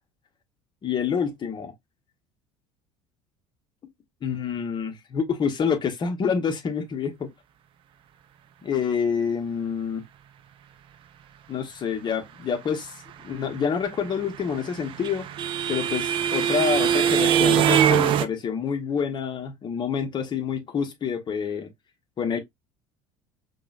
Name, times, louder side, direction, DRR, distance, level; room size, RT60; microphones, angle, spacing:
voice 1, 0.8-1.7 4.2-7.3 8.6-10.0 11.5-12.9 13.2-15.3 15.7-21.7 22.2-22.4, left 6 dB, 30° left, 0.9 m, -27 dB
sound 1, 14.4-18.2, right 9 dB, 35° right, 0.4 m, -22 dB
4.8 x 2.2 x 2.4 m
figure-of-eight pair, 65°, 16 cm